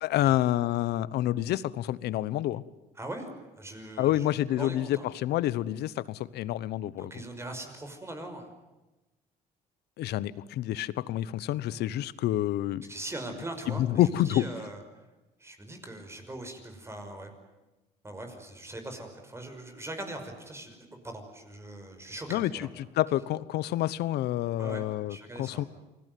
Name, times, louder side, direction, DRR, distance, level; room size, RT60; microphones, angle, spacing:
voice 1, 0.0-2.6 4.0-7.1 10.0-12.8 13.7-14.4 22.3-22.7 23.0-25.6, left 13 dB, 75° left, 18 dB, 1.1 m, -28 dB
voice 2, 3.0-3.3 3.5-4.3 4.5-5.1 7.0-8.5 12.9-14.8 15.4-17.3 18.0-22.7 24.6-25.7, right 1 dB, 15° right, 5 dB, 5.7 m, -41 dB
28.5 x 21.0 x 9.4 m, 1.1 s
cardioid pair, 110°, 17 cm